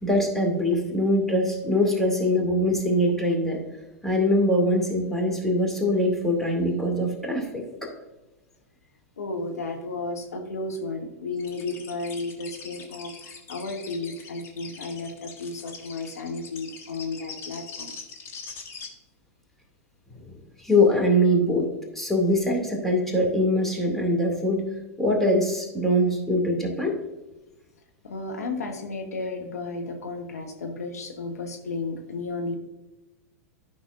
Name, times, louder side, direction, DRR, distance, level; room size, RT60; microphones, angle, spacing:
voice 1, 0.0-3.6 4.0-7.9 20.1-21.7 21.9-24.6 25.0-27.0, left 1 dB, 5° left, -1 dB, 2.2 m, -23 dB
voice 2, 9.2-13.1 13.5-17.9 28.0-32.6, left 3 dB, 75° left, 3 dB, 1.1 m, -33 dB
sound 1, 11.4-18.9, left 5 dB, 30° left, 1.5 m, -42 dB
12.5 x 5.9 x 2.5 m, 1.0 s
figure-of-eight pair, 95°, 8 cm